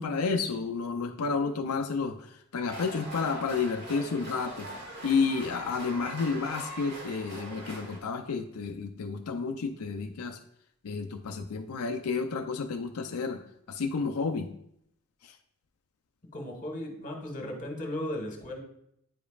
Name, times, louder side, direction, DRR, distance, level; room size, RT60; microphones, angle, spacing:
voice 1, 0.0-4.7 5.0-10.4 10.8-13.4 13.7-14.5 15.2-15.4, left 4 dB, 85° left, 5 dB, 0.5 m, -31 dB
sound 1, 2.7-8.0, right 1 dB, 50° right, 2.1 m, -42 dB
voice 2, 16.3-18.6, left 1 dB, 35° left, 1 dB, 1.4 m, -36 dB
9.3 x 5.1 x 2.4 m, 0.73 s
head